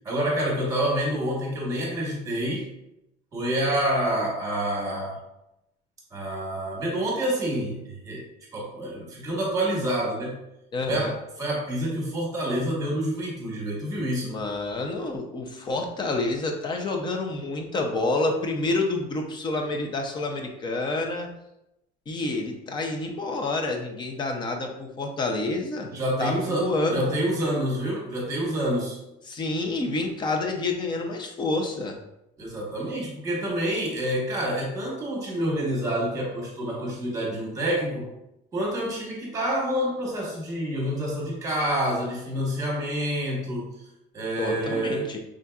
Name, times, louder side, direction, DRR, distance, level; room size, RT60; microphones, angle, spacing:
voice 1, 0.0-2.7 3.3-5.2 6.1-8.2 8.5-10.4 10.9-11.1 11.4-14.4 25.9-29.0 32.4-38.1 38.5-43.7 44.1-45.1, right 1 dB, 20° right, -2 dB, 1.2 m, -27 dB
voice 2, 10.7-11.1 14.3-21.3 22.1-25.9 26.2-27.2 29.3-32.0 44.4-45.2, left 2 dB, 25° left, 3 dB, 0.6 m, -28 dB
5.6 x 3.7 x 2.3 m, 0.86 s
cardioid pair, 180°, 18 cm